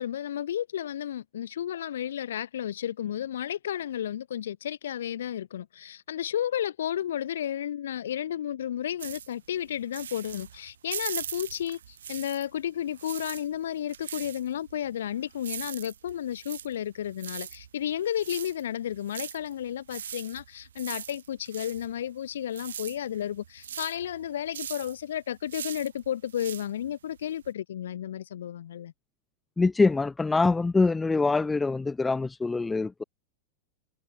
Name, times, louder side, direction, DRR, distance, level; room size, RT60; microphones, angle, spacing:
voice 1, 0.0-28.9, left 10 dB, 60° left, 0.7 m, -32 dB
sound 1, 9.0-12.6 12.9-27.5, right 9 dB, 65° right, 1.2 m, -41 dB
voice 2, 29.6-33.0, left 3 dB, 10° left, 0.4 m, -24 dB
figure-of-eight pair, 90°, 0 cm